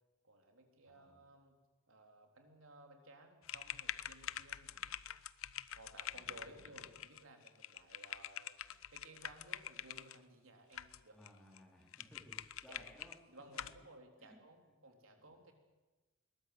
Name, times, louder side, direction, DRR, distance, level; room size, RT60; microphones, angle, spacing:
voice 1, 0.2-1.6 1.9-4.7 5.7-11.2 12.7-12.8 13.3-15.5, right 2 dB, 75° right, 3 dB, 3.8 m, -58 dB
voice 2, 0.8-1.3 4.7-4.9 6.1-7.0 11.1-13.2 14.2-15.4, equal, 5° left, 0 dB, 3.8 m, -63 dB
sound 1, 3.4-10.2 10.7-11.3 11.6-11.7 11.9-13.2 13.5-13.8, left 10 dB, 80° left, 0.7 m, -46 dB
21.5 x 20.0 x 8.0 m, 1.2 s
head